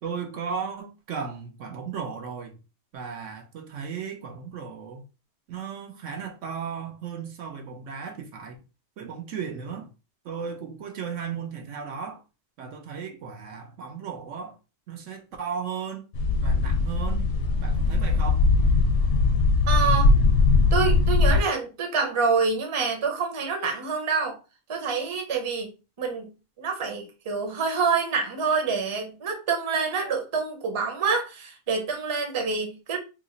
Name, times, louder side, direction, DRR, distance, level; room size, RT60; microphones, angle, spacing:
voice 1, 0.0-2.6 2.9-5.0 5.5-8.6 9.0-9.9 10.2-12.2 12.6-14.6 14.9-16.0 16.4-17.3 17.6-18.4, right 6 dB, 75° right, 1.0 m, -35 dB
sound 1, 16.1-21.4, left 3 dB, 65° left, 0.9 m, -20 dB
voice 2, 19.7-20.1 20.7-24.4 24.7-25.7 26.0-26.3 26.6-33.0, right 5 dB, 30° right, 0.7 m, -26 dB
2.9 x 2.3 x 3.8 m
omnidirectional pair, 1.3 m